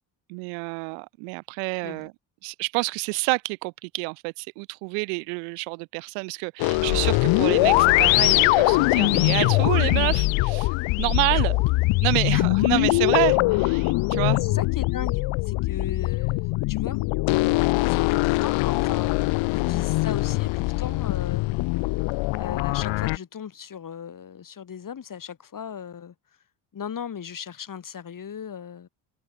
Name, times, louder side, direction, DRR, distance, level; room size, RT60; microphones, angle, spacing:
voice 1, 0.3-2.1 2.4-11.6 12.0-14.4, right 40 dB or more, 90° right, 2.0 m, -28 dB
sound 1, 6.6-23.2, left 21 dB, 80° left, 2.3 m, -22 dB
voice 2, 14.2-17.0 17.9-21.4 22.4-26.1 26.7-28.9, left 8 dB, 45° left, 3.0 m, -37 dB
open air
supercardioid pair, 65°, 46 cm